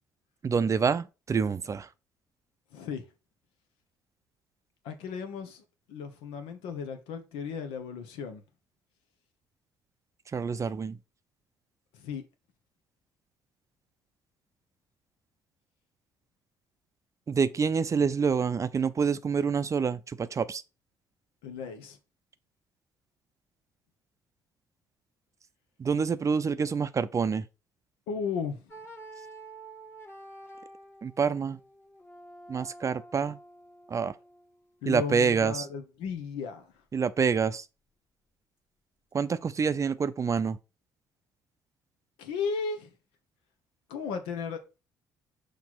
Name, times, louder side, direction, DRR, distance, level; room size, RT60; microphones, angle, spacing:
voice 1, 0.4-1.9 10.3-11.0 17.3-20.6 25.8-27.5 31.0-31.6 32.5-33.4 33.9-34.1 34.9-35.7 36.9-37.7 39.1-40.6, right 6 dB, 30° right, 0.5 m, -27 dB
voice 2, 2.7-3.0 4.8-5.6 5.9-8.4 11.9-12.2 21.4-22.0 28.1-28.6 34.8-36.7 42.2-42.9 43.9-44.6, left 6 dB, 70° left, 1.1 m, -35 dB
sound 1, 28.7-34.5, right 2 dB, 25° left, 1.7 m, -49 dB
6.0 x 3.3 x 5.8 m
hypercardioid pair, 50°, 10 cm